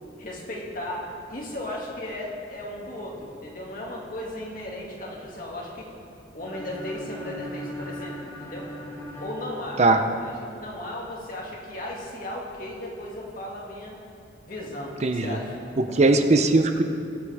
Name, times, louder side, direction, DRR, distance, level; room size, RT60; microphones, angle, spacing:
voice 1, 0.2-5.9 6.3-8.7 9.2-9.8 10.2-14.0 14.5-15.6 15.9-16.1, left 1 dB, 50° left, -2 dB, 2.2 m, -36 dB
sound 1, 6.4-10.3, equal, 25° left, 2.3 m, -39 dB
voice 2, 15.0-15.4 15.9-16.8, right 2 dB, 40° right, 7 dB, 0.6 m, -19 dB
21.0 x 8.1 x 3.5 m, 2.5 s
head